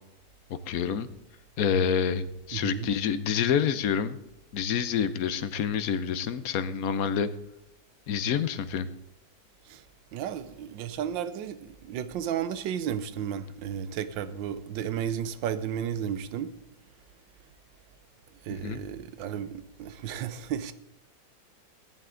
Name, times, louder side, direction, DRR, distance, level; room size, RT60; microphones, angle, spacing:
voice 1, 0.7-1.1 1.6-4.2 4.5-7.3 8.1-8.9 18.6-18.8, left 7 dB, 60° left, 13 dB, 1.1 m, -27 dB
voice 2, 2.5-2.9 9.7-9.8 10.1-16.5 18.4-20.7, right 9 dB, 80° right, 13 dB, 1.5 m, -33 dB
14.5 x 10.5 x 3.8 m, 0.83 s
omnidirectional pair, 2.0 m